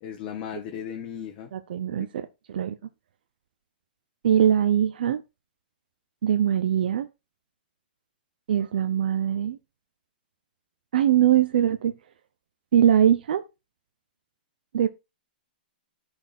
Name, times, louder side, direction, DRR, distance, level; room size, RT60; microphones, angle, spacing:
voice 1, 0.0-1.5 2.0-2.1, left 9 dB, 35° left, 1.4 m, -36 dB
voice 2, 1.5-2.8 4.2-5.2 6.2-7.1 8.5-9.6 10.9-11.9 12.7-13.4 14.7-14.9, right 10 dB, 70° right, 0.7 m, -22 dB
10.0 x 4.4 x 4.3 m
hypercardioid pair, 145°, 5 cm